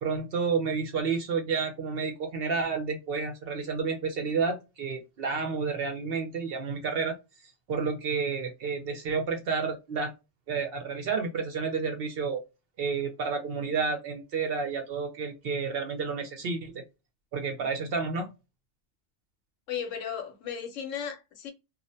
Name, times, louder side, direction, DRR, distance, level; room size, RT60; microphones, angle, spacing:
voice 1, 0.0-7.2 7.4-10.1 10.5-12.4 12.8-16.8 17.3-18.3, right 5 dB, 60° right, 0.7 m, -30 dB
voice 2, 19.7-21.5, left 8 dB, 80° left, 1.0 m, -35 dB
2.4 x 2.1 x 2.6 m
omnidirectional pair, 1.3 m